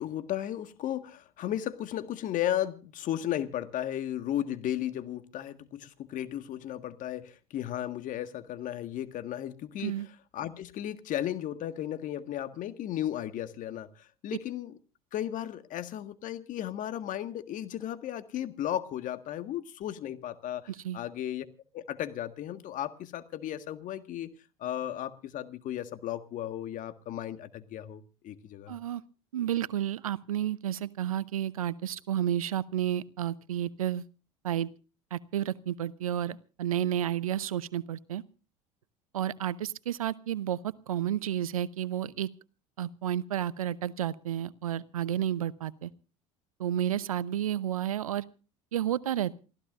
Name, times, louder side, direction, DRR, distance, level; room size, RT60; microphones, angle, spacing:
voice 1, 0.0-9.9 10.3-14.8 15.1-21.5 21.7-24.3 24.6-28.8, left 11 dB, 50° left, 1.6 m, -35 dB
voice 2, 20.7-21.0 28.7-29.0 29.3-34.0 34.4-34.7 35.1-38.2 39.1-42.3 42.8-45.9 46.6-48.2 48.7-49.4, right 11 dB, 85° right, 0.7 m, -31 dB
28.0 x 15.5 x 2.5 m
hypercardioid pair, 75°, 17 cm